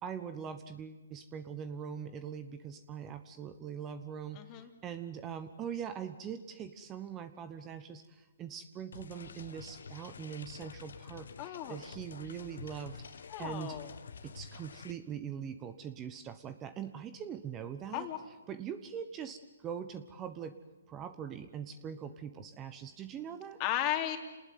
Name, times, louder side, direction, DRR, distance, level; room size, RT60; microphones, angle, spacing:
voice 1, 0.0-13.8 14.2-18.1 18.5-20.5 20.9-23.6, right 8 dB, 20° right, 11 dB, 1.1 m, -42 dB
voice 2, 4.3-4.7 11.4-11.8 13.3-13.9 17.9-18.2 23.6-24.2, left 12 dB, 30° left, 5 dB, 3.0 m, -35 dB
sound 1, 8.9-14.9, left 5 dB, 75° left, 1.6 m, -49 dB
28.0 x 19.5 x 9.5 m, 1.2 s
hypercardioid pair, 145°, 0 cm